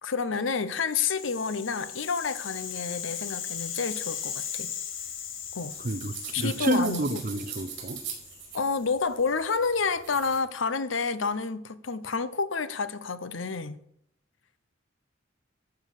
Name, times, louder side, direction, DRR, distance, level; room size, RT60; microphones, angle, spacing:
voice 1, 0.0-4.7 5.5-5.8 6.3-7.2 8.5-13.8, left 5 dB, 75° left, 0.8 m, -29 dB
Rattle (instrument), 0.8-9.0, left 8 dB, 90° left, 1.7 m, -38 dB
sound 1, 4.9-10.4, right 7 dB, 65° right, 4.8 m, -42 dB
voice 2, 5.8-8.0, right 2 dB, 45° right, 0.9 m, -29 dB
13.5 x 7.2 x 6.6 m
head